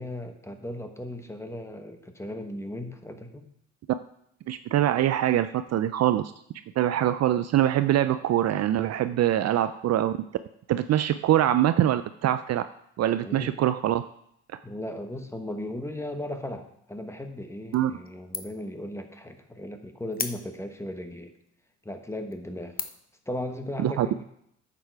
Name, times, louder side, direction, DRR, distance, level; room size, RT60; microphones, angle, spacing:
voice 1, 0.0-3.4 13.2-13.5 14.6-21.3 21.8-22.8 23.3-24.2, left 1 dB, 10° left, 6 dB, 1.2 m, -36 dB
voice 2, 4.5-6.3 6.8-10.1 10.7-12.6 13.0-14.0 17.7-17.9 23.8-24.1, right 12 dB, 60° right, 11 dB, 0.5 m, -24 dB
sound 1, 17.7-18.1 18.3-18.7 19.1-19.2 20.1-20.8 21.5-21.6 22.1-22.3 22.8-23.2, left 5 dB, 30° left, 0.8 m, -35 dB
10.0 x 6.9 x 4.7 m, 0.73 s
cardioid pair, 90°, 30 cm